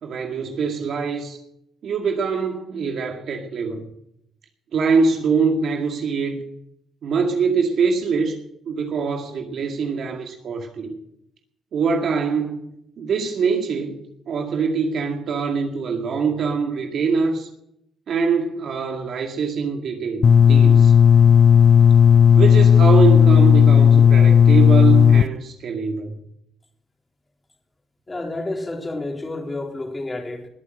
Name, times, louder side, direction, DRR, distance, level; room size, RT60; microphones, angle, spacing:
voice 1, 0.0-1.4 1.8-3.9 4.7-6.4 7.0-11.0 11.7-12.7 13.0-17.5 18.1-20.9 22.4-26.1, right 5 dB, 65° right, 2.1 m, -23 dB
sound 1, 20.2-25.2, left 8 dB, 45° left, 0.6 m, -12 dB
voice 2, 28.1-30.5, left 2 dB, 20° left, 3.9 m, -30 dB
20.5 x 8.4 x 6.4 m
cardioid pair, 90°, 0 cm